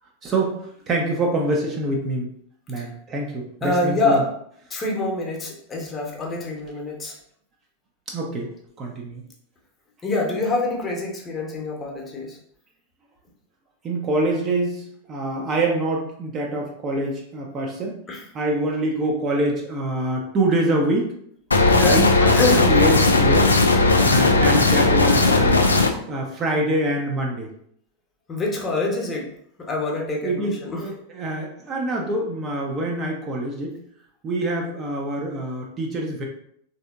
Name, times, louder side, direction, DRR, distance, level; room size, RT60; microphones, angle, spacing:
voice 1, 0.2-2.3 2.7-4.2 8.1-8.5 8.8-9.2 13.8-14.8 15.1-18.0 18.3-21.1 21.9-23.6 24.0-25.7 26.1-27.5 30.2-33.8 34.2-36.3, right 1 dB, 25° right, 0 dB, 0.5 m, -25 dB
voice 2, 3.6-4.2 4.7-7.1 10.0-12.4 18.1-18.2 21.7-22.0 22.3-22.8 28.3-29.2 29.7-30.8, left 2 dB, 20° left, -1 dB, 0.8 m, -25 dB
sound 1, 21.5-25.9, left 3 dB, 75° left, 0.3 m, -17 dB
3.4 x 2.6 x 2.4 m, 0.67 s
figure-of-eight pair, 90°, 0 cm